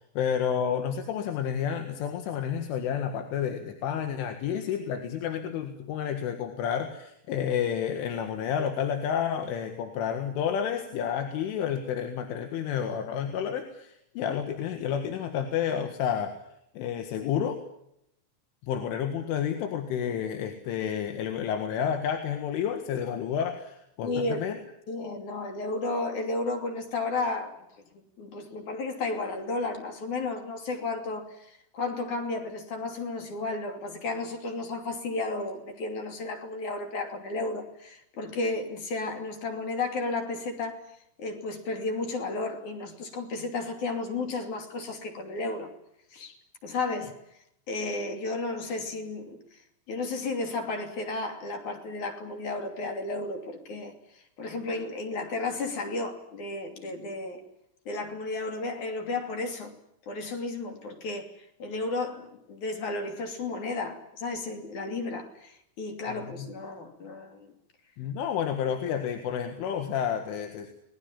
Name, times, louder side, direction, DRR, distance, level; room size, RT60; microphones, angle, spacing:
voice 1, 0.2-16.4 16.8-17.6 18.6-24.6 66.1-66.5 68.0-70.7, left 8 dB, 85° left, 4.3 m, -30 dB
voice 2, 24.0-24.5 24.9-27.6 28.2-40.8 41.2-45.7 46.1-46.3 46.6-47.2 47.7-49.6 49.9-57.4 57.9-59.7 60.1-67.5, left 3 dB, 45° left, 3.7 m, -33 dB
28.5 x 20.5 x 7.4 m
omnidirectional pair, 5.5 m